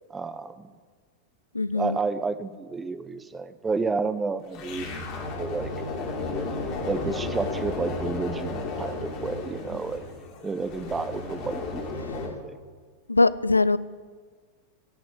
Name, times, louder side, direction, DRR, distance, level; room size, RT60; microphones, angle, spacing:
voice 1, 0.1-0.7 1.7-5.7 6.9-10.0 10.4-12.6, right 4 dB, 15° right, 13 dB, 0.6 m, -31 dB
voice 2, 1.5-2.0 13.1-13.8, left 3 dB, 80° left, 18 dB, 0.4 m, -21 dB
sound 1, 4.5-12.3, left 3 dB, 40° left, 2.7 m, -33 dB
17.5 x 6.1 x 7.9 m, 1.5 s
figure-of-eight pair, 90°, 0 cm